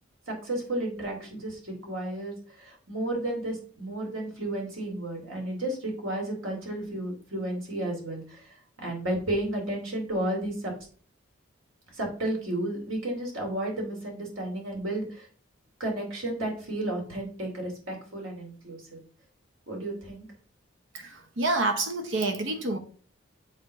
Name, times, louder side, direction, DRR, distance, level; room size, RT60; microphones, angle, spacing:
voice 1, 0.3-10.7 11.9-15.3 15.8-19.0 19.7-20.2, right 1 dB, 85° right, 2.6 m, -32 dB
voice 2, 20.9-22.8, right 2 dB, 65° right, 0.9 m, -28 dB
7.4 x 3.9 x 4.6 m
head